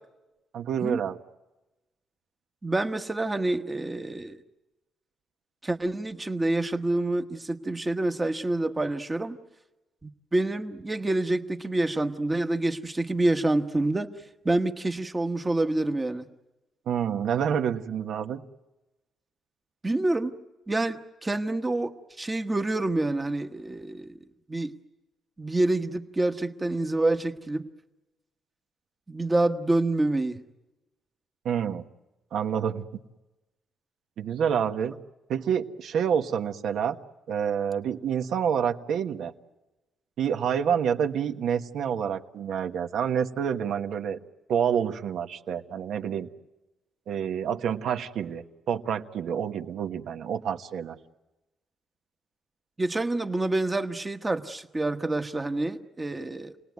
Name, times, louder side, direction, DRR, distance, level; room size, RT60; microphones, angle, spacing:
voice 1, 0.5-1.2 16.9-18.4 31.4-31.8 32.3-32.8 34.2-34.9 35.3-37.0 37.3-39.3 40.2-44.2 44.5-46.3 47.1-51.0, right 8 dB, 65° right, 6 dB, 1.3 m, -28 dB
voice 2, 2.6-4.4 5.6-9.4 10.0-14.1 14.4-16.2 19.8-20.3 20.7-24.2 24.5-24.7 25.4-27.7 29.1-30.4 52.8-56.7, right 2 dB, 15° right, 7 dB, 1.2 m, -27 dB
29.0 x 19.5 x 9.5 m, 1.1 s
cardioid pair, 165°, 0 cm